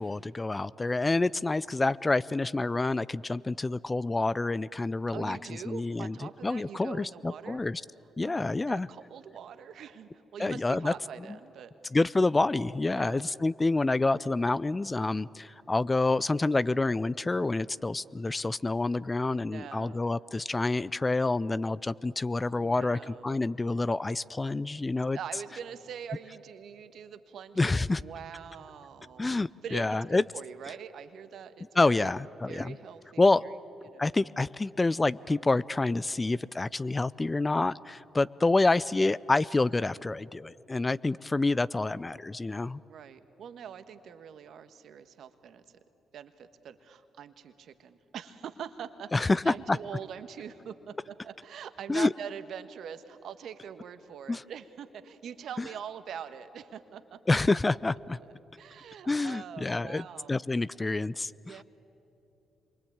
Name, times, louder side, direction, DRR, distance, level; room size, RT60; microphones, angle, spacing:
voice 1, 0.0-5.4 5.7-7.8 8.2-8.9 10.4-10.9 11.9-25.2 27.6-28.0 29.2-30.2 31.8-32.8 33.2-33.4 34.0-42.8 49.1-49.8 51.9-52.1 54.3-54.4 57.3-58.2 59.1-61.6, left 2 dB, 25° left, 19 dB, 0.5 m, -28 dB
voice 2, 5.1-7.6 8.2-11.7 12.9-13.2 19.4-20.3 22.5-23.5 25.1-29.4 29.6-32.1 32.5-33.6 33.8-34.0 42.9-45.6 46.1-57.4 58.2-60.4 61.4-61.6, right 8 dB, 70° right, 10 dB, 1.4 m, -43 dB
27.0 x 23.5 x 8.8 m, 3.0 s
hypercardioid pair, 50°, 0 cm